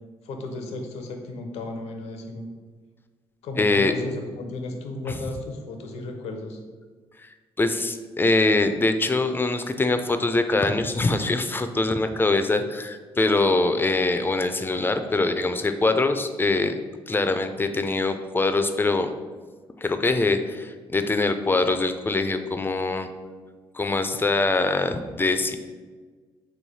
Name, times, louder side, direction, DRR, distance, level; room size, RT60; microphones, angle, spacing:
voice 1, 0.2-2.5 3.4-6.6, left 2 dB, 80° left, 4 dB, 0.6 m, -34 dB
voice 2, 3.6-3.9 7.6-16.8 17.1-19.1 19.8-23.1 23.7-25.6, left 2 dB, 20° left, 8 dB, 0.4 m, -23 dB
3.1 x 3.1 x 4.1 m, 1.4 s
supercardioid pair, 60°, 11 cm